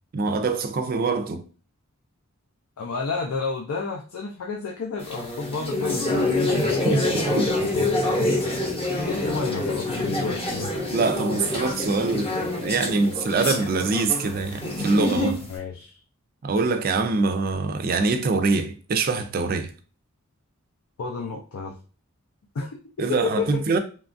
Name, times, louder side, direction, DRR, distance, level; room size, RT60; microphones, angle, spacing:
voice 1, 0.1-1.4 6.5-7.0 7.4-7.5 10.9-15.4 16.4-19.7 23.0-23.8, right 3 dB, 40° right, 0.3 m, -24 dB
voice 2, 2.8-8.4 8.9-10.7 15.5-16.0 21.0-21.8 22.5-23.6, left 4 dB, 75° left, 0.4 m, -31 dB
sound 1, 5.0-15.5, left 2 dB, 25° left, 0.7 m, -26 dB
2.9 x 2.3 x 2.5 m
head